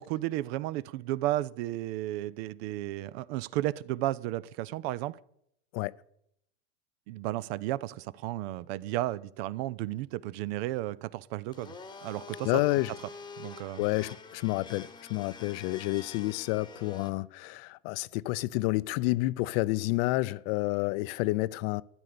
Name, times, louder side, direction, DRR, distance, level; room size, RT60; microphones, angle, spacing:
voice 1, 0.0-5.2 7.1-11.7 12.0-12.5 13.4-13.8, right 15 dB, 65° right, 0.7 m, -33 dB
Domestic sounds home sounds, 11.5-17.1, left 4 dB, 15° left, 1.1 m, -46 dB
voice 2, 12.4-12.9 13.8-21.8, left 19 dB, 60° left, 0.6 m, -29 dB
12.5 x 9.7 x 6.8 m
supercardioid pair, 120°, 33 cm